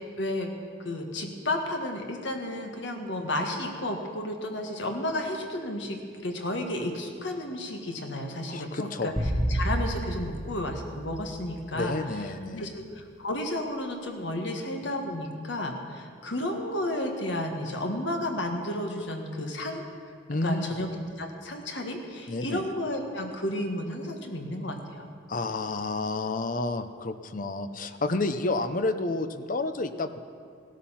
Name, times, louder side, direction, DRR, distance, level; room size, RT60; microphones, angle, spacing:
voice 1, 0.2-0.5 0.8-9.1 9.5-12.0 12.5-19.9 20.3-20.9 21.2-25.1, left 1 dB, 65° left, 3 dB, 1.7 m, -32 dB
voice 2, 8.5-9.1 11.7-12.7 20.3-20.7 22.3-22.6 25.3-30.2, left 2 dB, 45° left, 10 dB, 0.7 m, -30 dB
sound 1, 9.2-11.6, right 1 dB, ahead, 2.2 m, -30 dB
16.5 x 13.0 x 5.8 m, 2.2 s
head